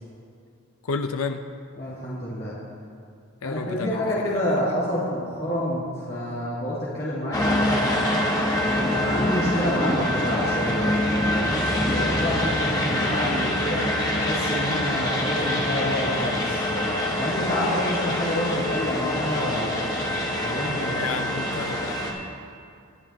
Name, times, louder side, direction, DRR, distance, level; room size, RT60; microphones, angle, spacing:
voice 1, 0.9-1.4 3.4-4.0 20.9-21.9, left 4 dB, 90° left, 7 dB, 0.6 m, -30 dB
voice 2, 1.8-2.5 3.4-7.8 8.6-13.8 14.1-19.8 20.4-21.0 21.7-21.8, equal, 50° left, -10 dB, 2.7 m, -28 dB
sound 1, 7.3-22.1, left 1 dB, 20° left, 1.5 m, -25 dB
22.5 x 11.0 x 2.9 m, 2.3 s
head